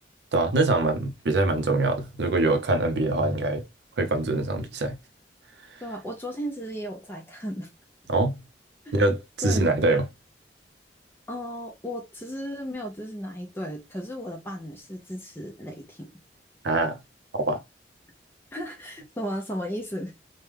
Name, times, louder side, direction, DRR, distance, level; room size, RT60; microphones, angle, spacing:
voice 1, 0.3-3.6 4.0-5.0 8.1-8.4 8.9-10.1 16.6-17.0 17.4-17.6, right 2 dB, 75° right, 0.6 m, -24 dB
voice 2, 5.8-7.7 8.8-9.0 9.4-9.7 11.3-16.1 18.5-20.1, equal, 15° left, 0.6 m, -35 dB
3.3 x 2.2 x 3.2 m
head